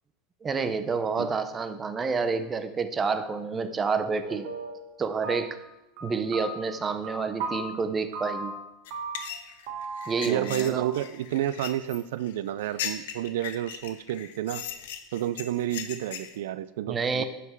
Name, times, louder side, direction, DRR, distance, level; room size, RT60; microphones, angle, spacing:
voice 1, 0.4-4.5 5.0-5.6 6.0-8.5 10.1-10.8 16.9-17.2, right 5 dB, 15° right, 10 dB, 0.6 m, -29 dB
sound 1, 4.3-5.0 5.2-5.7 6.0-7.7 8.1-8.6 8.9-9.4 9.7-10.5 10.8-10.9, right 3 dB, 65° right, 1.6 m, -36 dB
sound 2, 8.9-16.4, left 10 dB, 85° left, 1.1 m, -38 dB
voice 2, 10.3-14.7 15.1-17.2, right 12 dB, 85° right, 15 dB, 0.4 m, -30 dB
12.0 x 5.8 x 4.6 m, 0.96 s
supercardioid pair, 165°, 0 cm